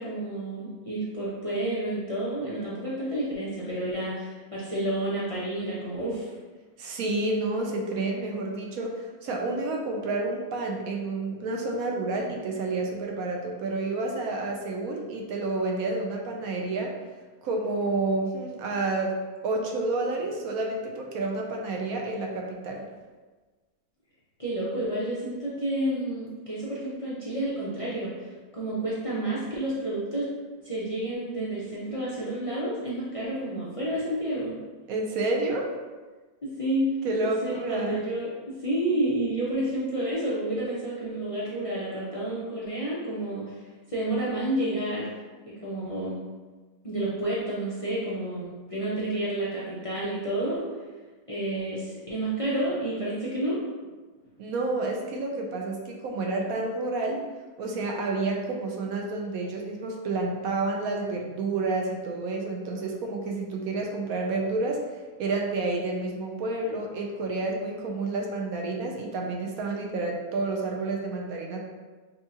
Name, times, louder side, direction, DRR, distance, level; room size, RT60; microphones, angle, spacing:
voice 1, 0.0-6.3 24.4-28.1 28.5-30.3 30.6-34.5 36.4-36.8 37.1-38.3 38.6-43.6 43.9-45.1 45.5-46.2 46.8-50.7 51.3-53.6, right 1 dB, 35° left, -8 dB, 0.5 m, -30 dB
voice 2, 6.8-16.9 17.4-19.1 19.4-22.8 34.9-35.7 37.0-38.0 54.4-57.3 57.6-64.8 65.2-71.6, right 2 dB, 70° right, 1 dB, 1.0 m, -29 dB
5.4 x 2.4 x 2.8 m, 1.3 s
omnidirectional pair, 1.7 m